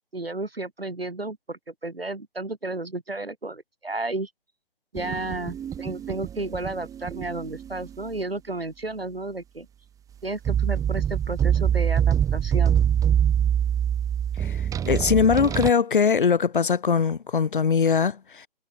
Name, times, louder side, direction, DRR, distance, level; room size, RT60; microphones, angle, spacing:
voice 1, 0.1-4.3 4.9-9.7 10.2-12.8, right 2 dB, 85° right, 7.9 m, -32 dB
sound 1, 5.0-7.9 10.5-15.7, right 9 dB, 10° right, 4.3 m, -24 dB
voice 2, 14.9-18.5, left 6 dB, 60° left, 2.5 m, -21 dB
figure-of-eight pair, 135°, 29 cm